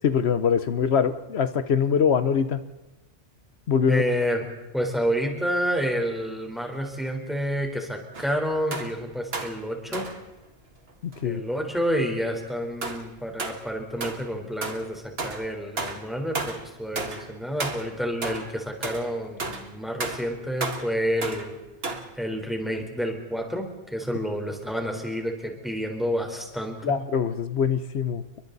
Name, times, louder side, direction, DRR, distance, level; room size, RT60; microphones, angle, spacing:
voice 1, 0.0-2.6 3.7-4.0 11.0-11.4 26.8-28.2, left 7 dB, 75° left, 12 dB, 1.1 m, -23 dB
voice 2, 3.9-4.4 4.7-10.1 11.2-21.5 22.2-27.0, equal, ahead, 2 dB, 4.0 m, -29 dB
sound 1, 8.1-8.4 8.7-9.0 9.3-9.6 9.9-10.2 11.1-11.2 12.8-13.1 13.4-13.6 14.0-14.3 14.6-14.9 15.2-15.5 15.8-16.1 16.3-16.6 17.0-17.3 17.6-17.9 18.2-18.5 18.8-19.1 19.4-19.7 20.0-20.3 20.6-20.9 21.2-21.5 21.8-22.1, right 3 dB, 65° right, 2.0 m, -33 dB
30.0 x 23.5 x 4.0 m, 1.0 s
omnidirectional pair, 1.1 m